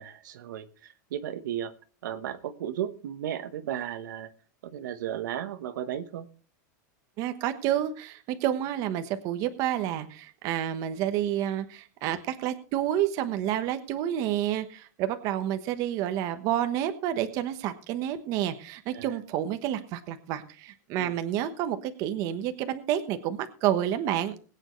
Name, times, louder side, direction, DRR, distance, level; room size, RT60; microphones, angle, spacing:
voice 1, 0.0-1.7 2.0-4.3 4.6-6.3 18.9-19.2 21.0-21.2, right 10 dB, 80° right, 9 dB, 1.1 m, -35 dB
voice 2, 7.2-24.3, right 11 dB, 35° right, 9 dB, 1.2 m, -29 dB
21.0 x 8.9 x 3.2 m, 0.39 s
supercardioid pair, 165°, 10 cm